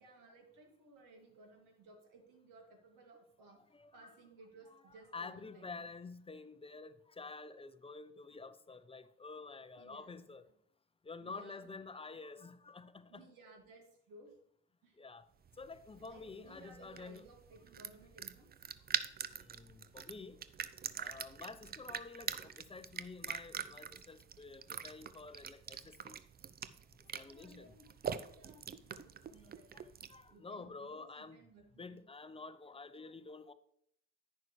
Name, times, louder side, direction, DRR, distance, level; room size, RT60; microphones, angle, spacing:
voice 1, 0.0-3.6 3.9-5.8 9.7-10.3 11.2-11.8 13.1-14.4 14.8-15.0 16.0-18.7 27.3-29.7 30.3-32.0, right 2 dB, 60° right, 2.5 m, -59 dB
voice 2, 3.7-4.1 4.7-4.8 5.1-10.5 11.0-13.2 15.0-15.3 15.5-17.2 19.3-20.4 21.0-26.2 27.0-27.7 28.5-28.6 29.7-31.4 31.7-33.5, left 4 dB, 15° left, 0.7 m, -49 dB
sound 1, 15.4-30.3, right 7 dB, 25° right, 0.6 m, -44 dB
10.5 x 9.5 x 3.2 m
figure-of-eight pair, 50°, 36 cm